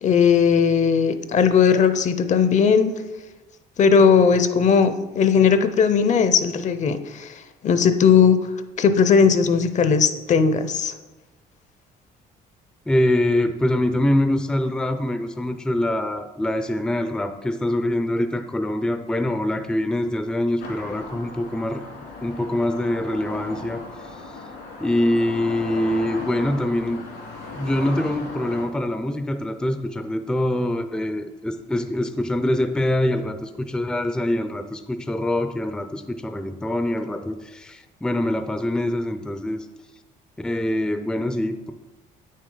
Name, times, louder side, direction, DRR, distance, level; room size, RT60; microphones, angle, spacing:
voice 1, 0.0-2.9 3.8-7.3 7.6-8.4 8.8-10.9, left 6 dB, 45° left, 10 dB, 0.6 m, -18 dB
voice 2, 12.9-21.8 22.2-23.8 24.1-24.2 24.8-27.0 27.5-39.7 40.4-41.7, left 1 dB, 5° left, 8 dB, 0.4 m, -24 dB
sound 1, 20.6-28.7, left 3 dB, 80° left, 2.6 m, -37 dB
8.6 x 6.5 x 3.9 m, 1.2 s
cardioid pair, 110°, 17 cm